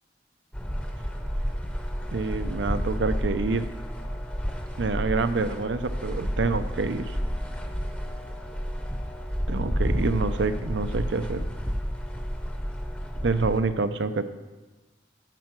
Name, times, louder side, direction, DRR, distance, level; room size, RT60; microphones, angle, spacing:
sound 1, 0.5-13.6, equal, 5° left, 0.7 m, -31 dB
voice 1, 2.1-3.7 4.8-7.2 9.5-11.4 13.2-14.3, right 3 dB, 80° right, 11 dB, 0.5 m, -27 dB
10.5 x 4.7 x 7.4 m, 1.2 s
head